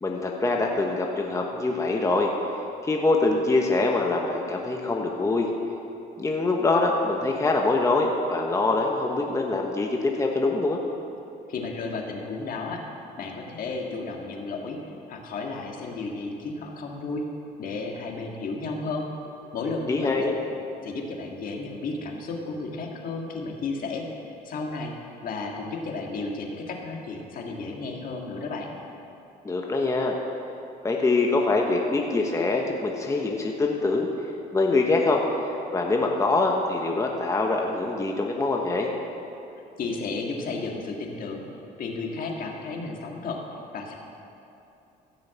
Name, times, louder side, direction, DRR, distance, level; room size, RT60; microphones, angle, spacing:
voice 1, 0.0-2.3 2.8-5.5 6.2-10.8 19.9-20.3 29.4-30.2 30.8-34.1 34.5-38.9, left 3 dB, 20° left, 1 dB, 1.1 m, -24 dB
voice 2, 11.5-12.8 13.2-17.3 17.6-19.1 19.5-20.3 20.8-24.9 25.2-28.7 39.5-41.4 41.8-43.4 43.7-44.0, left 3 dB, 55° left, 1 dB, 1.8 m, -33 dB
15.0 x 6.3 x 7.5 m, 2.8 s
cardioid pair, 110°, 17 cm